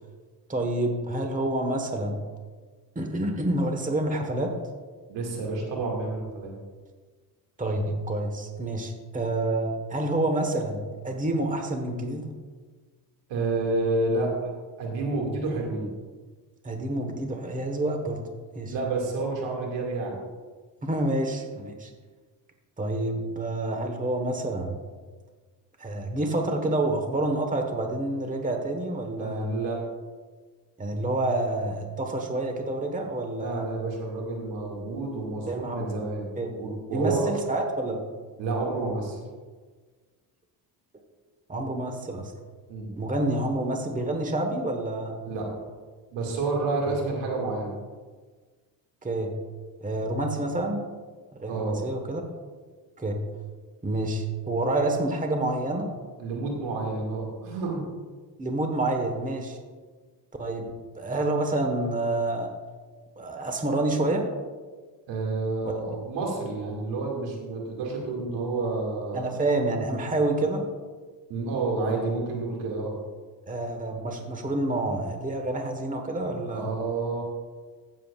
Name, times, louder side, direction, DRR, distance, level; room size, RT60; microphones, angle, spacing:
voice 1, 0.5-2.2 2.9-4.5 7.6-12.3 16.6-18.2 18.5-18.7 20.8-21.9 22.8-24.8 25.8-29.5 30.8-33.7 35.5-35.9 36.4-36.5 36.9-38.0 41.5-42.3 43.0-45.1 46.9-47.0 49.0-49.4 49.8-50.8 51.4-52.2 53.0-53.2 53.8-55.9 58.4-59.6 60.4-60.7 60.9-62.5 63.2-64.2 65.6-65.7 69.1-70.7 73.5-76.7, right 2 dB, 20° right, 4 dB, 1.3 m, -28 dB
voice 2, 5.1-6.5 13.3-14.5 14.8-15.9 18.6-20.2 29.2-29.8 33.4-36.3 36.5-37.3 38.4-39.2 42.7-42.9 45.3-45.5 46.1-47.7 51.5-51.8 56.2-57.9 65.1-69.3 71.3-72.9 76.5-77.2, right 3 dB, 90° right, -1 dB, 2.3 m, -29 dB
15.5 x 7.5 x 2.5 m, 1.4 s
cardioid pair, 100°, 42 cm